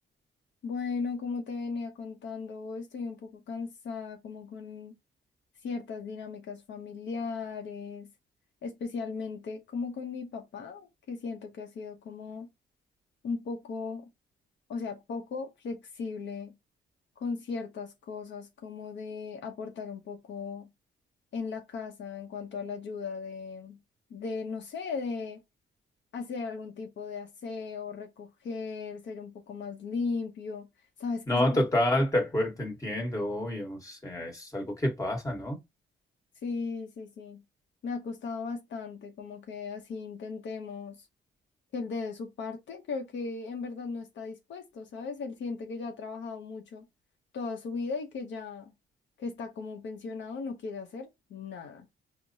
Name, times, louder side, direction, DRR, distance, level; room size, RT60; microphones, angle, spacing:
voice 1, 0.6-4.9 5.6-8.1 8.6-12.5 13.2-14.1 14.7-16.5 17.2-20.7 21.3-23.8 24.1-25.4 26.1-30.7 31.0-31.6 36.4-37.4 37.8-41.0 41.7-46.8 47.3-48.7 49.2-51.9, left 4 dB, 65° left, 0.7 m, -37 dB
voice 2, 31.3-35.6, left 1 dB, 15° left, 1.4 m, -28 dB
4.5 x 2.1 x 2.6 m
cardioid pair, 90°, 20 cm